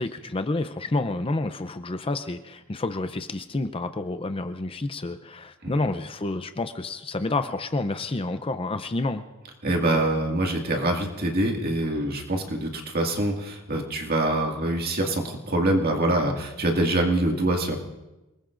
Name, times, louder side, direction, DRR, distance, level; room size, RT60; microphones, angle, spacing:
voice 1, 0.0-9.2, left 2 dB, 25° left, 9 dB, 0.5 m, -29 dB
voice 2, 9.6-17.8, right 1 dB, 45° right, 1 dB, 2.1 m, -25 dB
28.0 x 19.5 x 2.6 m, 1.0 s
head